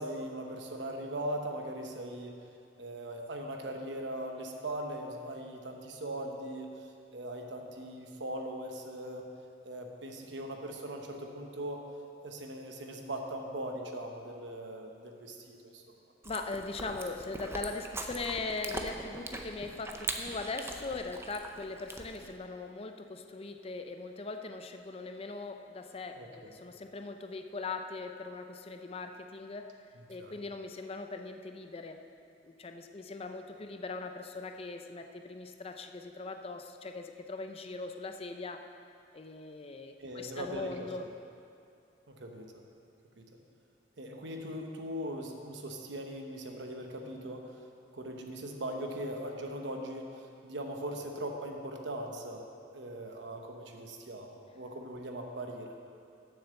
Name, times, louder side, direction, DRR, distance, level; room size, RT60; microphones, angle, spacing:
voice 1, 0.0-2.4 2.8-9.3 9.6-11.8 12.2-15.9 26.2-26.6 30.0-30.4 40.0-40.9 42.1-42.5 43.2-43.3 44.0-47.6 47.9-55.7, right 1 dB, 80° right, 2 dB, 1.0 m, -40 dB
voice 2, 16.2-29.7 30.1-32.0 32.4-38.7 39.1-41.1, left 3 dB, 35° left, 6 dB, 0.5 m, -40 dB
Chewing mastication, 16.2-22.4, right 2 dB, 15° right, 0.5 m, -41 dB
6.9 x 6.7 x 7.0 m, 2.5 s
head